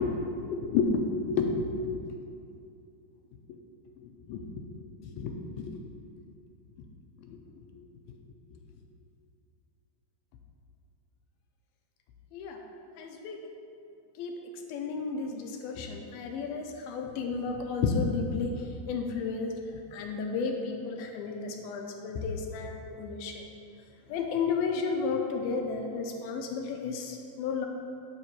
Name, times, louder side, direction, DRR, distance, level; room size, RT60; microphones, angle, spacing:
voice 1, 0.4-1.7 3.5-3.6 4.0-4.4 5.0-5.8 12.3-12.6 13.0-13.4 14.2-14.3 14.7-18.6 18.9-19.6 19.9-23.4 24.1-27.7, left 5 dB, 80° left, 3 dB, 2.4 m, -32 dB
12.0 x 8.0 x 3.0 m, 2.6 s
omnidirectional pair, 4.6 m